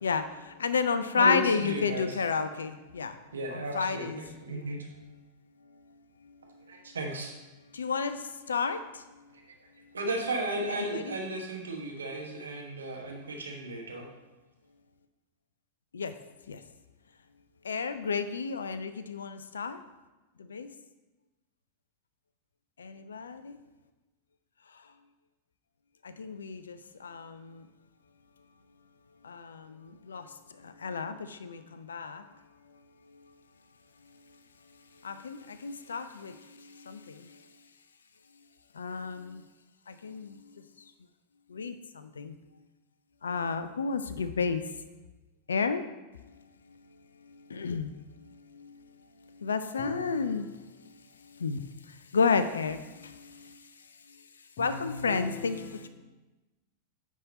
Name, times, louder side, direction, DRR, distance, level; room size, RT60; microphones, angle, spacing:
voice 1, 0.0-3.1 3.5-4.2 4.5-4.8 7.7-8.2 8.5-8.8 10.8-11.1 15.9-16.1 16.5-16.6 17.6-19.8 20.5-20.7 22.8-23.5 26.2-27.6 29.2-30.3 30.6-32.2 35.0-36.4 36.8-37.3 38.8-39.4 39.9-40.4 41.5-42.3 43.2-44.6 45.5-45.8 47.5-47.9 48.5-48.7 49.4-50.4 51.4-51.6 52.1-53.5 54.6-55.6, left 5 dB, 70° left, 0.4 m, -31 dB
voice 2, 1.1-2.2 3.3-4.9 6.7-7.3 9.9-14.1, right 2 dB, 70° right, 1.1 m, -34 dB
voice 3, 49.8-50.7 54.6-55.9, left 2 dB, 45° left, 1.3 m, -41 dB
9.5 x 3.7 x 4.1 m
figure-of-eight pair, 90°, 0 cm